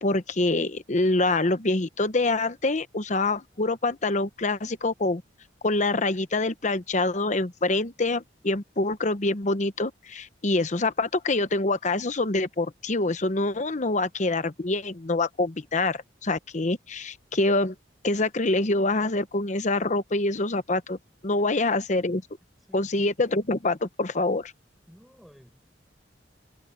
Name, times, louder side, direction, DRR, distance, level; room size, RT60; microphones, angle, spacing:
voice 1, 0.0-5.2 5.6-17.7 18.0-21.0 21.2-22.2 22.7-24.5, left 2 dB, 40° left, 0.9 m, -25 dB
voice 2, 22.7-23.0 24.9-25.7, equal, ahead, 4.8 m, -54 dB
head